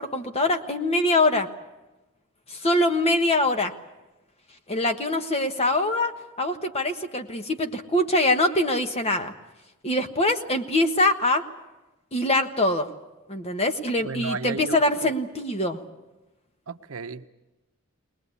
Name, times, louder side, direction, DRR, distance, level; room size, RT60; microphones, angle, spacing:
voice 1, 0.0-1.5 2.5-3.7 4.7-9.3 9.8-11.4 12.1-12.9 13.3-15.8, left 1 dB, 30° left, 6 dB, 1.3 m, -23 dB
voice 2, 14.0-15.1 16.7-17.3, right 4 dB, 80° right, 10 dB, 0.9 m, -34 dB
21.5 x 20.5 x 8.4 m, 1.0 s
head